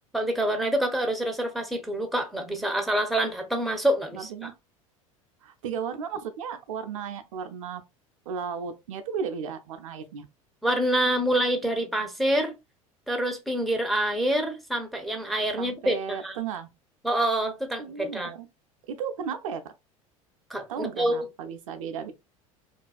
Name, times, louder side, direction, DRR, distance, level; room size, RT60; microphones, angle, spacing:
voice 1, 0.1-4.3 10.6-12.5 13.1-16.3 17.0-18.3 20.5-21.2, right 1 dB, ahead, 0.5 m, -26 dB
voice 2, 4.1-4.5 5.4-7.8 8.3-10.3 15.6-16.7 17.8-18.5 18.9-19.7 20.7-22.1, right 6 dB, 65° right, 0.5 m, -34 dB
2.4 x 2.2 x 2.3 m
figure-of-eight pair, 75°, 18 cm